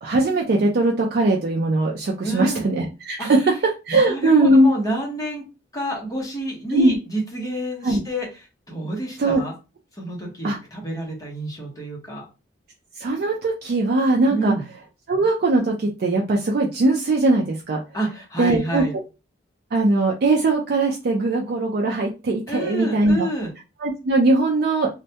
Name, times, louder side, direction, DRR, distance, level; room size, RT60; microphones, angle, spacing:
voice 1, 0.0-3.5 3.9-4.7 6.7-7.0 7.8-8.0 9.2-9.4 10.4-10.6 13.0-14.5 15.1-17.8 18.4-18.8 19.7-23.3 23.8-24.9, right 2 dB, 50° right, -1 dB, 0.4 m, -20 dB
voice 2, 2.2-2.6 3.2-3.3 3.9-5.4 5.7-8.3 8.7-9.5 10.0-12.2 14.3-14.6 17.9-18.9 22.5-23.5, right 1 dB, 20° left, -2 dB, 0.8 m, -28 dB
2.1 x 2.1 x 2.7 m, 0.29 s
head